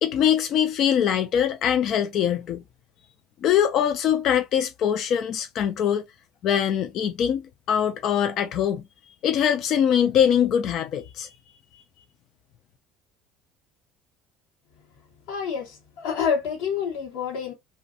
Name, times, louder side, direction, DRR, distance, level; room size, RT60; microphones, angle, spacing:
voice 1, 0.0-2.6 3.4-6.0 6.4-8.8 9.2-11.3, left 9 dB, 60° left, 0.3 m, -23 dB
voice 2, 15.3-17.5, left 7 dB, 75° left, 0.9 m, -28 dB
2.5 x 2.2 x 2.5 m
supercardioid pair, 85°, 0 cm